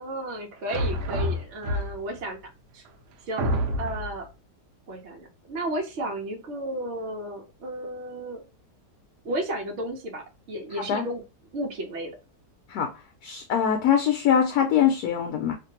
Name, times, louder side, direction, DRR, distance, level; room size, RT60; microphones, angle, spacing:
voice 1, 0.0-2.8 3.2-3.5 3.8-4.3 4.9-8.4 9.2-10.2 10.5-11.2 11.5-12.2, right 1 dB, 55° right, 0.9 m, -33 dB
sound 1, 0.7-2.2 2.8-2.9 3.4-4.2, equal, 80° right, 1.2 m, -27 dB
voice 2, 13.2-15.5, left 8 dB, 75° left, 1.0 m, -22 dB
2.8 x 2.5 x 2.7 m
omnidirectional pair, 1.7 m